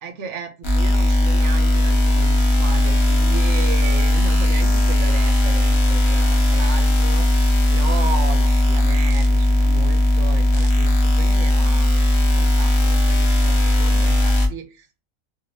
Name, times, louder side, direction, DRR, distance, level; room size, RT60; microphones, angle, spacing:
voice 1, 0.0-15.0, right 4 dB, 65° right, 7 dB, 0.8 m, -34 dB
sound 1, 0.6-14.5, left 1 dB, 50° left, 0.3 m, -17 dB
2.7 x 2.6 x 3.1 m, 0.30 s
omnidirectional pair, 1.4 m